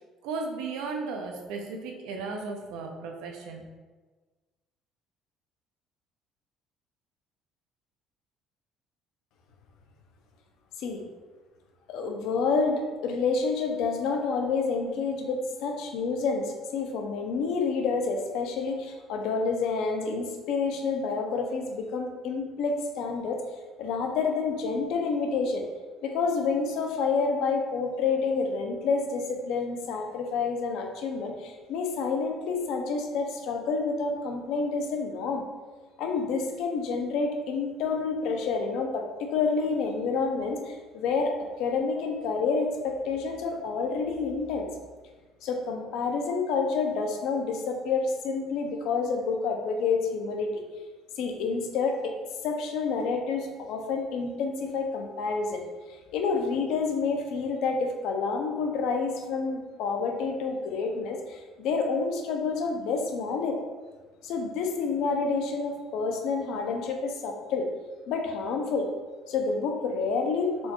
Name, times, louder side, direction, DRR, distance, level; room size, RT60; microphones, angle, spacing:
voice 1, 0.2-3.6, right 4 dB, 90° right, 2 dB, 0.5 m, -35 dB
voice 2, 11.9-23.4 23.8-25.6 26.0-35.4 36.0-41.3 41.6-44.7 45.4-50.6 51.2-52.2 52.4-55.6 56.1-63.6 64.2-67.7 68.1-68.9 69.3-70.7, left 4 dB, 65° left, 3 dB, 0.5 m, -28 dB
4.2 x 2.3 x 3.0 m, 1.3 s
cardioid pair, 165°, 0 cm